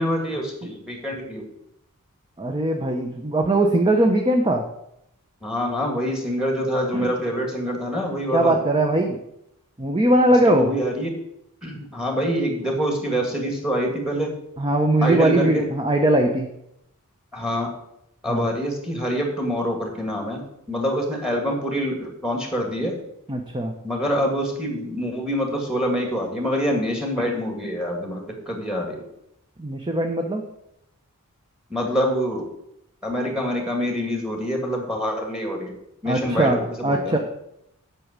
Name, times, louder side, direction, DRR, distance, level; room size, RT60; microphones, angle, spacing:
voice 1, 0.0-1.5 5.4-8.6 10.5-11.2 11.6-14.3 15.0-15.7 17.3-17.7 18.2-20.4 20.7-23.0 23.8-29.0 31.7-32.5 33.0-35.8 36.0-37.2, equal, 5° right, 2 dB, 2.0 m, -25 dB
voice 2, 2.4-4.6 6.9-7.1 8.3-9.2 9.8-10.7 14.6-16.5 18.3-18.5 23.3-23.7 29.6-30.4 36.0-37.2, right 1 dB, 20° right, 3 dB, 1.0 m, -20 dB
8.5 x 6.1 x 8.2 m, 0.79 s
head